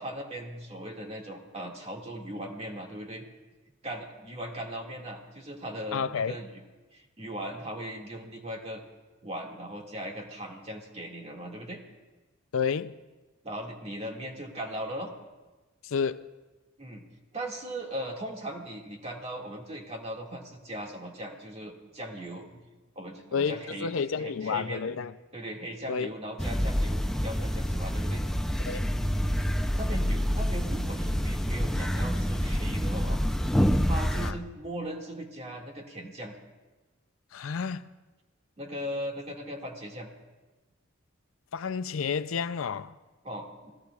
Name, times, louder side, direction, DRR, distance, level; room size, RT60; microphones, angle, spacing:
voice 1, 0.0-3.2 3.8-6.5 6.9-8.8 9.2-11.8 13.4-15.2 16.8-17.0 17.3-22.6 23.0-24.9 25.3-28.2 29.7-33.2 33.9-36.4 38.6-40.1 43.2-43.7, right 1 dB, 30° right, 2.0 m, -38 dB
voice 2, 5.9-6.4 12.5-12.9 15.8-16.3 23.3-25.1 25.9-26.1 28.7-28.9 34.2-34.4 37.3-37.9 41.5-43.0, left 6 dB, 70° left, 0.5 m, -30 dB
sound 1, 26.4-34.3, equal, ahead, 0.5 m, -27 dB
28.0 x 17.5 x 2.4 m
head